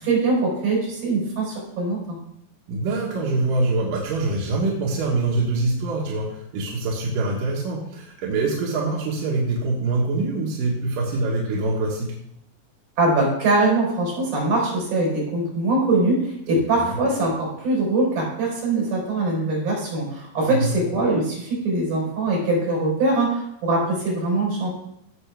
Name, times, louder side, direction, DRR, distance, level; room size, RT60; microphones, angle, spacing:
voice 1, 0.0-2.2 13.0-24.7, right 2 dB, 90° right, -3 dB, 6.2 m, -22 dB
voice 2, 2.7-12.1 16.8-17.0 20.5-20.8, right 3 dB, 70° right, -3 dB, 3.0 m, -24 dB
16.0 x 6.9 x 3.5 m, 0.76 s
omnidirectional pair, 4.1 m